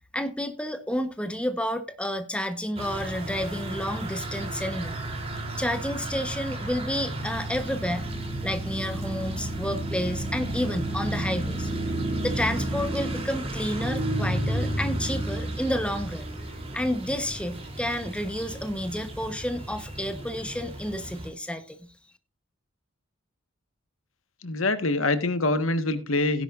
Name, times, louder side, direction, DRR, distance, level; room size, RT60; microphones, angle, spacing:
voice 1, 0.1-5.0 5.6-8.1 8.4-11.7 12.2-16.3 16.7-21.9, equal, 5° left, 1.1 m, -30 dB
sound 1, 2.8-21.3, right 1 dB, 30° right, 3.3 m, -32 dB
voice 2, 24.4-26.4, left 2 dB, 85° left, 1.5 m, -25 dB
16.5 x 10.5 x 2.5 m
head